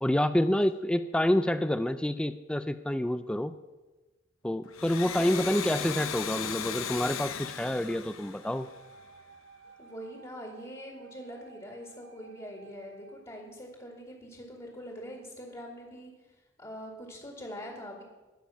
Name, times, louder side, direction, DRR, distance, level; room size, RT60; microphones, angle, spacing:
voice 1, 0.0-3.5 4.4-8.7, left 1 dB, 5° left, 12 dB, 0.3 m, -28 dB
Domestic sounds home sounds, 4.6-9.1, left 7 dB, 80° left, 0.9 m, -37 dB
voice 2, 5.0-5.5 9.8-16.1 16.6-18.0, equal, 25° left, 0 dB, 2.2 m, -43 dB
Wind instrument woodwind instrument, 8.4-13.3, right 5 dB, 85° right, 3.8 m, -55 dB
19.5 x 7.1 x 5.8 m, 1.2 s
head